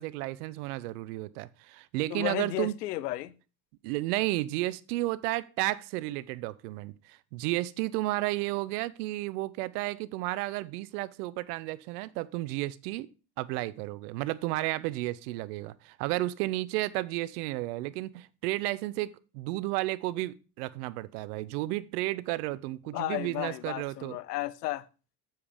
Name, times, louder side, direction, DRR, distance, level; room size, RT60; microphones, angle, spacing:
voice 1, 0.0-2.7 3.8-13.1 13.4-19.1 19.3-24.2, right 18 dB, 75° right, 0.7 m, -32 dB
voice 2, 2.1-3.3 22.9-24.8, left 16 dB, 85° left, 0.7 m, -33 dB
7.7 x 7.4 x 3.4 m
hypercardioid pair, 65°, 47 cm